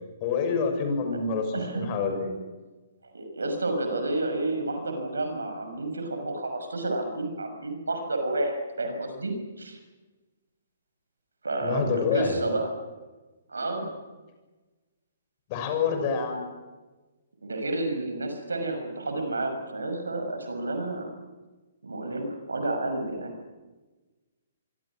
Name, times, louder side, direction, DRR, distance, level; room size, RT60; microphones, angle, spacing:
voice 1, 0.2-2.3 11.6-12.4 15.5-16.4, left 5 dB, 35° left, 5 dB, 6.8 m, -27 dB
voice 2, 1.5-1.8 3.1-9.8 11.4-12.7 13.5-13.9 17.4-21.1 21.8-23.3, right 2 dB, 75° right, 6 dB, 6.2 m, -30 dB
25.5 x 25.0 x 6.2 m, 1.2 s
figure-of-eight pair, 125°, 0 cm